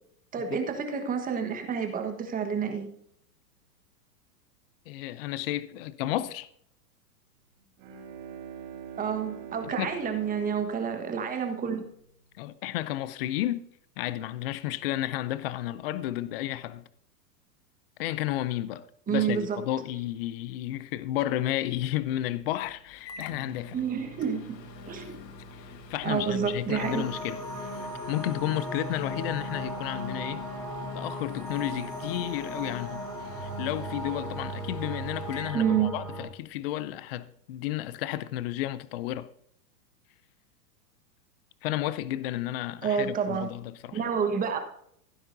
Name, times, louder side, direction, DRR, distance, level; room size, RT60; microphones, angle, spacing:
voice 1, 0.3-2.9 9.0-11.8 19.1-19.6 23.7-24.6 24.9-25.2 26.0-27.0 35.5-35.9 42.8-43.5 43.9-44.6, right 7 dB, 15° right, 1.3 m, -29 dB
voice 2, 4.9-6.5 9.6-10.0 12.3-13.7 14.0-16.8 18.0-23.8 25.5-30.4 30.9-39.3 41.6-44.0, left 14 dB, 40° left, 0.4 m, -32 dB
Bowed string instrument, 7.6-12.3, right 8 dB, 50° right, 3.5 m, -44 dB
Microwave oven, 22.4-36.4, left 2 dB, 80° left, 1.7 m, -47 dB
sound 1, 26.8-36.2, equal, 10° left, 3.3 m, -36 dB
16.0 x 9.6 x 2.7 m
hypercardioid pair, 145°, 49 cm